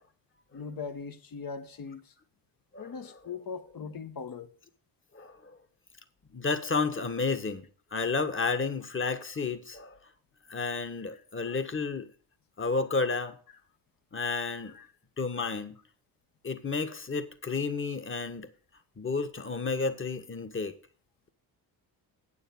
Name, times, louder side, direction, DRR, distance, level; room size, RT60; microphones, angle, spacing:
voice 1, 0.5-2.1 2.8-4.5 11.1-11.2 14.7-14.9, left 5 dB, 55° left, 1.4 m, -40 dB
voice 2, 5.1-5.5 6.3-10.0 10.5-12.1 12.6-13.3 14.1-14.8 15.2-15.8 16.4-18.5 19.0-20.7, left 4 dB, 30° left, 1.6 m, -31 dB
9.1 x 7.0 x 7.0 m
cardioid pair, 70°, 42 cm